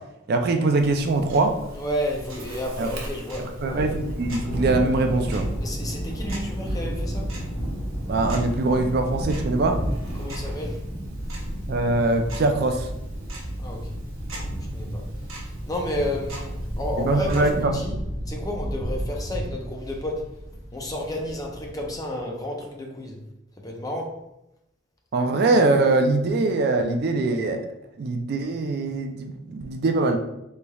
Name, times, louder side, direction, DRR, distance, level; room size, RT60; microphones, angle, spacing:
voice 1, 0.3-1.6 2.8-2.9 3.6-5.5 8.1-9.8 11.7-12.9 17.0-17.8 25.1-27.6 28.0-30.2, right 2 dB, 50° right, 5 dB, 0.3 m, -22 dB
Tick-tock, 0.8-17.6, right 1 dB, 80° right, 0.8 m, -40 dB
voice 2, 1.7-4.0 5.6-7.3 10.1-10.8 13.6-14.0 14.3-15.1 15.4-18.0 18.3-20.3 20.7-23.2 23.6-24.2, left 1 dB, 15° left, 0 dB, 0.5 m, -32 dB
Thunder, 3.6-22.0, equal, 50° left, 1.4 m, -32 dB
4.0 x 3.2 x 2.3 m, 0.87 s
head